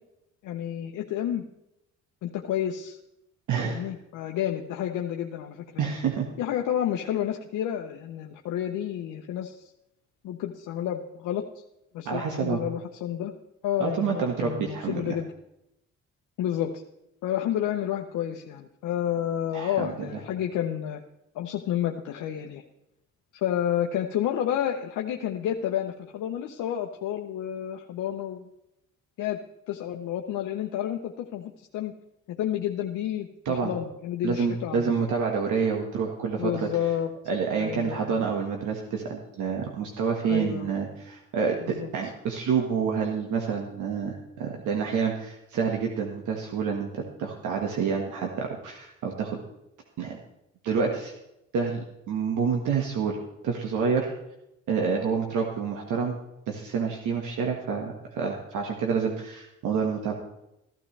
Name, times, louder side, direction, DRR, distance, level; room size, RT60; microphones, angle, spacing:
voice 1, 0.4-1.4 2.2-3.0 3.7-5.9 6.4-9.7 10.2-11.5 11.9-13.3 13.6-15.3 16.4-16.8 17.2-21.0 21.3-22.6 23.4-28.5 29.2-29.4 29.7-31.9 32.3-34.9 36.4-37.1 37.6-38.2 40.2-40.7 41.7-41.9, left 10 dB, 85° left, 2 dB, 0.9 m, -30 dB
voice 2, 3.5-3.8 5.8-6.3 12.0-12.6 13.8-15.2 19.5-19.9 33.4-33.7 34.2-36.7 37.3-49.4 50.0-50.2 50.6-51.1 51.5-53.2 53.4-54.1 54.7-56.2 56.5-60.1, right 6 dB, 80° right, 1 dB, 1.7 m, -28 dB
15.0 x 12.0 x 3.3 m, 0.85 s
cardioid pair, 90°, 30 cm